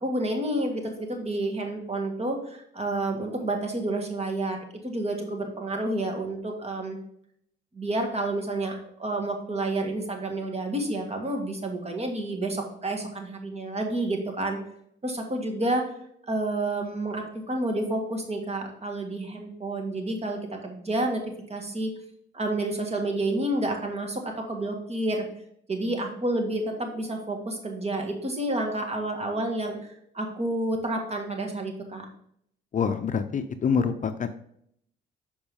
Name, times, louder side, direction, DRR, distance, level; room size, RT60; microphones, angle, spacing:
voice 1, 0.0-4.6 4.8-7.0 7.7-14.6 15.0-15.8 16.3-21.2 21.5-21.9 22.3-25.2 25.7-29.8 30.1-32.1, right 1 dB, 30° right, 3 dB, 1.7 m, -29 dB
voice 2, 32.7-34.3, left 6 dB, 40° left, 9 dB, 0.6 m, -26 dB
6.9 x 5.2 x 3.5 m, 0.70 s
cardioid pair, 90°, 20 cm